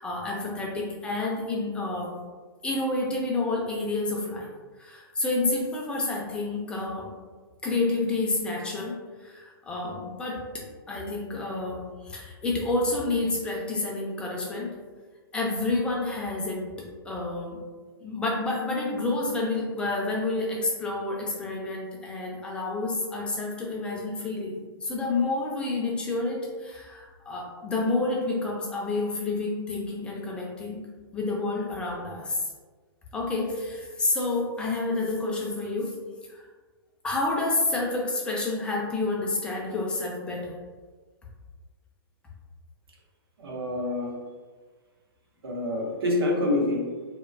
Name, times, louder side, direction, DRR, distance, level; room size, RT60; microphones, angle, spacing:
voice 1, 0.0-2.1 2.6-4.5 4.8-7.1 7.6-8.9 9.2-14.7 15.3-16.6 17.0-17.6 18.0-30.8 31.1-32.4 33.1-35.9 36.3-36.4 37.0-40.6, left 2 dB, 10° left, -2 dB, 0.3 m, -29 dB
voice 2, 43.4-44.2 45.4-46.9, left 2 dB, 70° right, -1 dB, 0.7 m, -26 dB
2.4 x 2.1 x 2.3 m, 1.4 s
hypercardioid pair, 135°, 13 cm